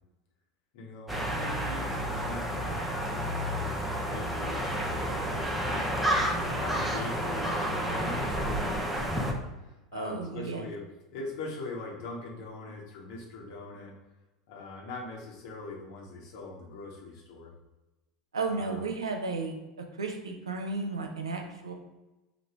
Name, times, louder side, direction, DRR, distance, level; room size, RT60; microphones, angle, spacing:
voice 1, 0.7-3.5 4.0-4.7 6.4-10.8 11.1-13.9 14.5-17.5 18.5-18.8, left 3 dB, 60° left, -2 dB, 1.3 m, -42 dB
sound 1, 1.1-9.3, equal, 5° right, 0.7 m, -30 dB
voice 2, 9.9-10.7 18.3-19.6 20.0-21.7, right 3 dB, 80° right, 3 dB, 0.7 m, -33 dB
5.1 x 2.5 x 3.3 m, 1.0 s
figure-of-eight pair, 80°, 3 cm